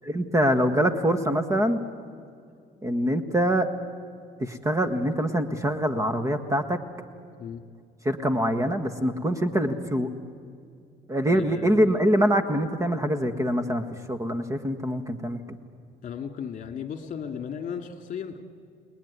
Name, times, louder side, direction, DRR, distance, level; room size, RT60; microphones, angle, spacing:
voice 1, 0.0-1.8 2.8-3.7 4.4-6.8 8.0-10.1 11.1-13.8 14.1-15.4, equal, 20° right, 9 dB, 1.6 m, -24 dB
voice 2, 11.3-12.0 16.0-18.4, left 7 dB, 50° left, 6 dB, 2.3 m, -36 dB
29.5 x 20.0 x 9.8 m, 2.3 s
cardioid pair, 110°, 17 cm